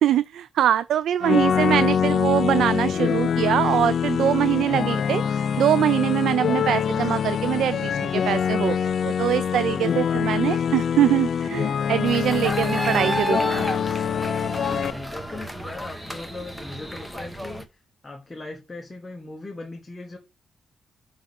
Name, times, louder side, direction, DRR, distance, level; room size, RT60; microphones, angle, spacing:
voice 1, 0.0-5.2 5.6-13.7, right 11 dB, 90° right, 0.4 m, -23 dB
sound 1, 1.2-14.9, left 7 dB, 50° left, 0.4 m, -24 dB
voice 2, 9.5-10.0 14.6-20.2, left 2 dB, 15° left, 1.1 m, -39 dB
sound 2, 12.1-17.6, equal, 5° right, 1.0 m, -31 dB
5.4 x 4.5 x 5.8 m
wide cardioid pair, 160°, 0 cm